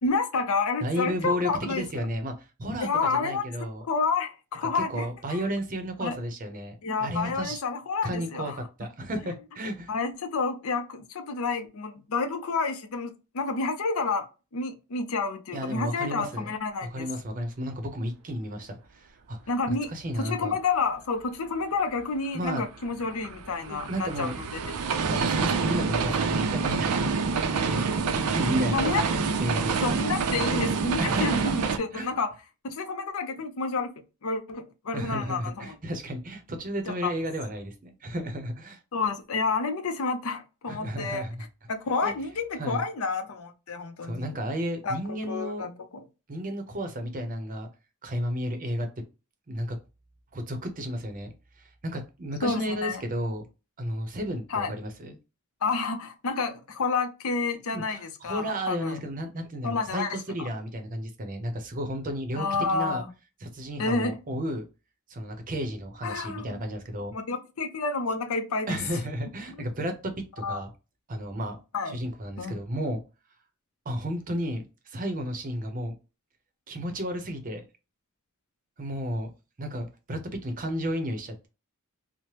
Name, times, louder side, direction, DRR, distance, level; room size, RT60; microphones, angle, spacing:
voice 1, 0.0-1.9 2.8-3.4 3.8-5.4 6.0-6.2 6.8-8.9 9.9-14.3 14.5-17.1 19.5-19.9 20.2-24.6 28.7-29.2 29.8-32.3 32.6-33.9 34.2-35.8 36.9-37.1 38.9-41.3 41.7-44.3 44.8-45.7 52.4-53.0 54.5-54.7 55.6-59.0 59.6-60.5 62.4-63.1 63.8-64.2 66.0-66.6 67.1-68.8 69.6-69.7 70.4-70.6 71.7-72.0 72.4-72.6, left 4 dB, 70° left, 0.6 m, -29 dB
voice 2, 0.8-3.8 4.7-7.6 8.0-9.9 15.5-16.5 16.8-19.4 19.7-20.5 22.3-22.6 23.7-24.3 25.1-27.8 28.3-29.1 29.4-30.0 31.0-32.1 34.9-38.8 40.7-41.5 42.0-42.1 42.6-42.8 44.0-45.7 46.3-47.7 48.0-48.9 49.5-49.8 50.3-51.3 51.6-53.4 53.8-55.2 57.7-63.0 63.4-64.6 65.1-67.1 68.7-69.9 70.4-70.7 71.1-71.6 71.9-73.0 73.9-75.9 76.7-77.6 78.8-79.3 79.6-81.5, equal, 40° right, 0.6 m, -33 dB
sound 1, 22.5-31.8, right 4 dB, 85° right, 0.5 m, -27 dB
3.1 x 2.1 x 2.8 m
head